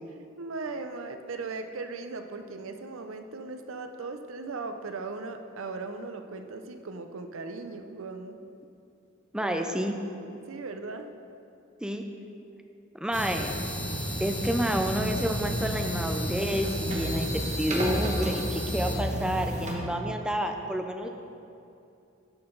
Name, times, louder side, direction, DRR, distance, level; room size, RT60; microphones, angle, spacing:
voice 1, 0.4-8.4 9.4-9.6 10.2-11.1, right 3 dB, 75° right, 7 dB, 0.6 m, -38 dB
voice 2, 9.3-10.0 11.8-12.0 13.0-13.5 14.2-21.1, equal, 5° right, 4 dB, 0.4 m, -29 dB
sound 1, 13.1-19.7, equal, 35° right, 1.2 m, -31 dB
11.0 x 5.8 x 3.9 m, 2.7 s
head